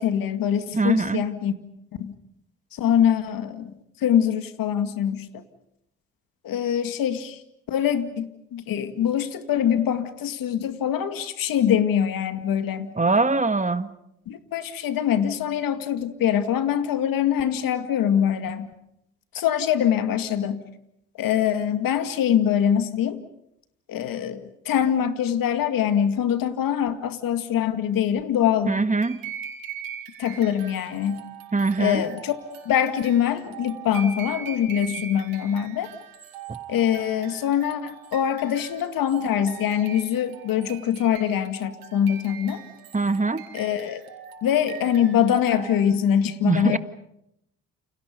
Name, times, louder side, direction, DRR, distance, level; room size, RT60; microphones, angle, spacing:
voice 1, 0.0-1.5 2.0-2.1 2.7-5.4 6.4-7.4 7.7-12.9 14.3-18.7 19.3-20.6 21.2-23.2 23.9-28.8 30.2-31.2 31.8-32.4 32.7-35.9 36.7-42.6 43.5-44.0 44.4-46.8, left 9 dB, 70° left, 9 dB, 2.2 m, -23 dB
voice 2, 0.7-1.2 13.0-13.9 28.6-29.2 31.5-32.0 36.5-36.6 42.9-43.4 46.4-46.8, right 3 dB, 20° right, 11 dB, 1.7 m, -22 dB
sound 1, 29.0-46.1, right 8 dB, 75° right, 4.8 m, -41 dB
30.0 x 28.0 x 5.3 m, 0.79 s
hypercardioid pair, 55°, 35 cm